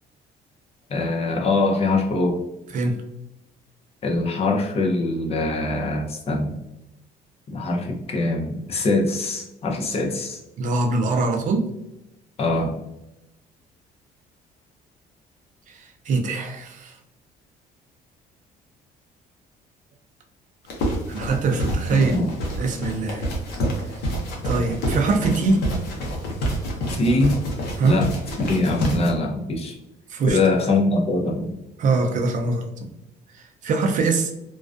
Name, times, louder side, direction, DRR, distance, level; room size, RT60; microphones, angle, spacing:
voice 1, 0.9-2.4 4.0-6.6 7.5-10.4 12.4-12.8 21.9-22.3 26.9-27.4 27.8-28.1 28.4-29.7 30.3-31.5, left 2 dB, 35° left, 0 dB, 0.6 m, -23 dB
voice 2, 10.6-11.7 15.7-16.9 21.1-22.3 22.6-23.3 24.4-25.6 27.8-28.0 30.1-30.4 31.8-32.9 33.3-34.3, right 3 dB, 50° right, 4 dB, 0.5 m, -23 dB
sound 1, 20.7-29.1, equal, 85° left, 0.7 m, -28 dB
2.4 x 2.2 x 2.4 m, 0.88 s
cardioid pair, 110°, 17 cm